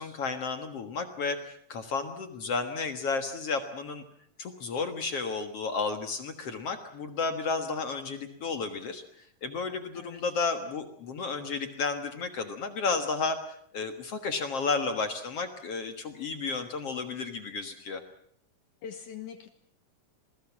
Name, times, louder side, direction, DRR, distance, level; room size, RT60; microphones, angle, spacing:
voice 1, 0.0-4.0 4.4-9.0 9.4-13.4 13.7-18.0, left 4 dB, 55° left, 7 dB, 2.2 m, -32 dB
voice 2, 18.8-19.5, left 8 dB, 70° left, 8 dB, 2.6 m, -42 dB
28.0 x 20.0 x 7.3 m, 0.66 s
omnidirectional pair, 3.9 m